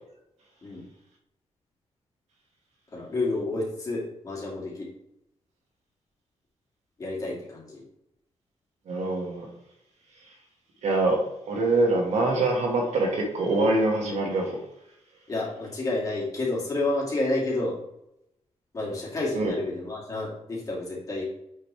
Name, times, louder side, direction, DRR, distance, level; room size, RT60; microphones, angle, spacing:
voice 1, 2.9-4.9 7.0-7.8 15.3-17.7 18.7-21.2, left 2 dB, 30° left, -4 dB, 2.7 m, -30 dB
voice 2, 8.9-9.5 10.8-11.2 11.5-14.6 19.3-19.5, right 2 dB, 75° right, 0 dB, 2.1 m, -24 dB
8.3 x 5.5 x 3.5 m, 0.81 s
wide cardioid pair, 180°, 12 cm